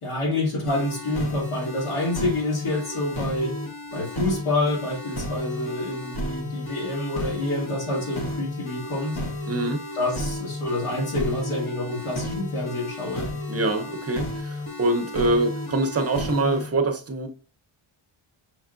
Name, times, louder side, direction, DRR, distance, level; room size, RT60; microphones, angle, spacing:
voice 1, 0.0-3.6 3.9-9.2 9.9-13.3, left 2 dB, 80° left, 2.0 m, -27 dB
sound 1, 0.7-16.7, left 1 dB, 50° left, 1.3 m, -33 dB
voice 2, 9.5-9.8 13.5-17.3, right 2 dB, 30° right, 0.6 m, -24 dB
5.9 x 3.5 x 2.4 m
wide cardioid pair, 130°, 49 cm